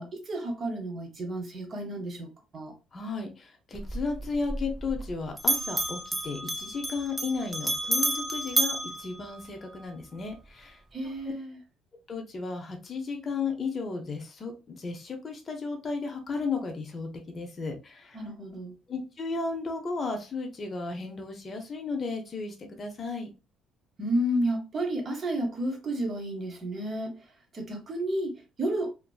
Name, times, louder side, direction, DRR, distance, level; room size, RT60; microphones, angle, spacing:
voice 1, 0.0-2.7 10.9-11.6 18.1-18.8 24.0-27.2 27.5-28.9, right 1 dB, 35° right, 0.8 m, -31 dB
voice 2, 2.9-10.8 12.1-18.2 18.9-23.3, left 4 dB, 30° left, 0.6 m, -34 dB
Bell, 3.7-5.1 5.4-9.9, right 1 dB, 15° right, 0.4 m, -31 dB
2.6 x 2.6 x 2.3 m
cardioid pair, 135°, 0 cm